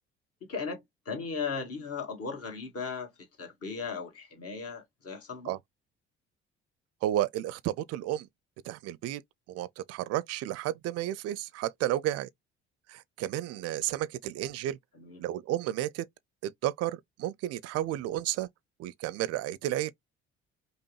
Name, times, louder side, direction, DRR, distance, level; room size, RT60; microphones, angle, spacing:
voice 1, 0.5-3.1 3.4-5.5 14.9-15.2, left 5 dB, 45° left, 1.6 m, -37 dB
voice 2, 7.0-8.3 8.6-9.2 9.5-12.3 12.9-14.8 15.2-16.1 16.4-18.5 18.8-19.9, right 13 dB, 50° right, 0.5 m, -32 dB
5.3 x 2.1 x 3.2 m
figure-of-eight pair, 50°, 33 cm